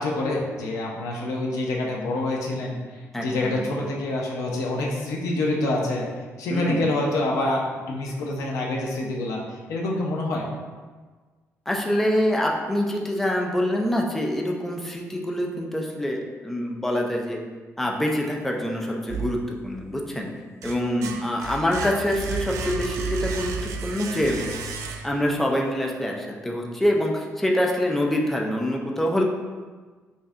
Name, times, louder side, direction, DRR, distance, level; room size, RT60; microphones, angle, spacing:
voice 1, 0.0-2.8 3.2-6.1 6.4-7.6 7.9-10.4 21.0-21.2, left 2 dB, 85° left, -2 dB, 0.6 m, -26 dB
voice 2, 3.1-3.9 6.5-6.8 11.7-17.4 17.8-19.4 19.6-20.3 20.6-24.4 25.0-29.2, left 1 dB, 5° left, -1 dB, 0.4 m, -25 dB
sound 1, 19.1-19.9 20.3-25.4, right 5 dB, 85° right, 0.4 m, -33 dB
5.3 x 2.6 x 2.5 m, 1.4 s
cardioid pair, 170°, 5 cm